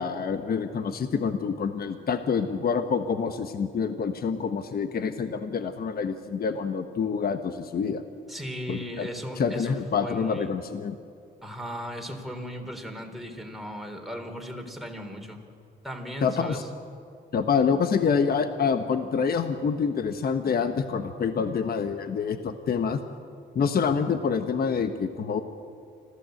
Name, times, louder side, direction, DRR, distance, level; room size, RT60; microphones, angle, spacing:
voice 1, 0.0-8.0 8.7-9.1 9.4-11.0 16.2-16.6 17.3-23.0 23.5-25.4, left 6 dB, 50° left, 8 dB, 1.2 m, -27 dB
voice 2, 8.3-9.8 10.0-10.5 11.4-15.4 15.8-16.7, equal, ahead, 2 dB, 3.5 m, -37 dB
26.0 x 15.0 x 7.9 m, 2.3 s
cardioid pair, 90°, 20 cm